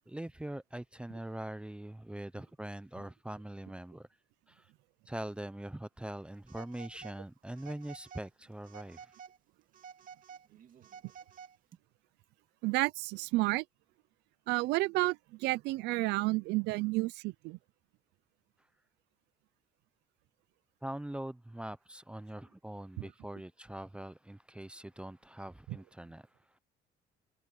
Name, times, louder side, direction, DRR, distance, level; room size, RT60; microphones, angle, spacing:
voice 1, 0.1-4.1 4.5-4.7 5.1-9.1 20.8-26.3, right 1 dB, 5° right, 0.7 m, -42 dB
Telephone, 6.5-7.2 7.6-8.3 8.6-9.4 9.7-11.8, right 7 dB, 50° right, 2.9 m, -51 dB
voice 2, 12.6-13.6 14.5-17.6 23.0-23.1 25.7-25.8, right 21 dB, 90° right, 0.6 m, -31 dB
cardioid pair, 110°, 17 cm